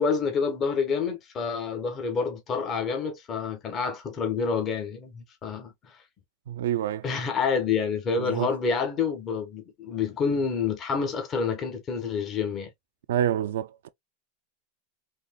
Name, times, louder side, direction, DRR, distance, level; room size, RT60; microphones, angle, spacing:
voice 1, 0.0-5.9 7.0-12.7, left 5 dB, 35° left, 1.4 m, -28 dB
voice 2, 6.5-7.1 8.2-8.5 13.1-13.9, right 11 dB, 80° right, 0.4 m, -27 dB
4.2 x 3.0 x 2.3 m
hypercardioid pair, 115°, 0 cm